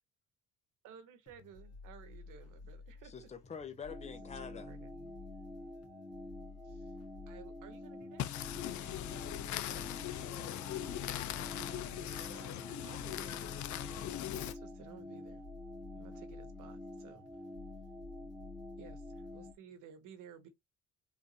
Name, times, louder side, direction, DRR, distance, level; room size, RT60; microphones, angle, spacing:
voice 1, 0.8-3.3 4.5-5.2 6.6-6.9 7.3-8.3 11.6-13.4 14.1-15.4 15.9-17.2 18.8-20.5, right 8 dB, 90° right, 1.0 m, -55 dB
sound 1, 1.3-19.5, left 4 dB, 55° left, 1.4 m, -53 dB
voice 2, 3.0-4.7, left 6 dB, 20° left, 0.7 m, -46 dB
sound 2, 3.9-19.5, left 1 dB, 5° right, 1.1 m, -49 dB
voice 3, 8.2-14.5, left 13 dB, 70° left, 0.5 m, -40 dB
3.7 x 2.6 x 2.6 m
cardioid pair, 90°, 30 cm